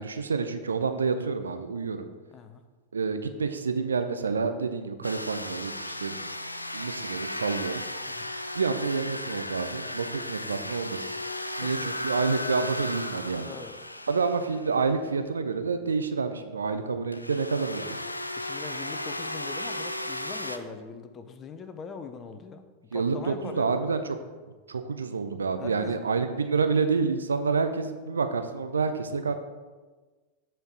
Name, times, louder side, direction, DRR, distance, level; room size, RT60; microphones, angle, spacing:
voice 1, 0.0-2.1 2.9-6.2 6.7-7.8 8.5-11.1 11.6-13.5 14.1-18.0 22.9-24.0 24.7-29.4, right 4 dB, 70° right, 9 dB, 0.5 m, -28 dB
voice 2, 2.3-2.6 8.1-8.3 11.6-12.0 13.4-13.8 18.4-22.6 22.9-23.8 25.6-26.0, left 5 dB, 25° left, 8 dB, 0.7 m, -41 dB
sound 1, 5.0-14.9 17.1-20.6, left 1 dB, 85° left, 0.4 m, -35 dB
7.7 x 4.5 x 4.8 m, 1.3 s
figure-of-eight pair, 90°, 0 cm